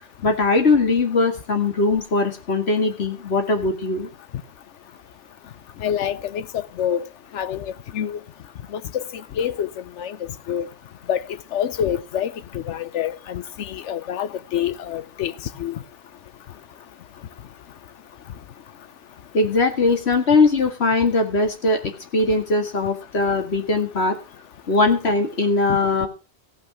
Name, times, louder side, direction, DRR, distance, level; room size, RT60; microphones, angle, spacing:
voice 1, 0.2-4.1 19.3-24.2 24.7-26.1, left 3 dB, 65° left, 2.1 m, -20 dB
voice 2, 5.8-6.4 6.8-7.1 7.3-8.2 8.7-8.8 9.4-9.7 10.0-10.2 10.5-10.7 11.1-11.2 11.5-15.3 15.6-15.7 25.7-25.8, left 9 dB, 85° left, 1.1 m, -26 dB
15.5 x 5.9 x 5.9 m
omnidirectional pair, 1.2 m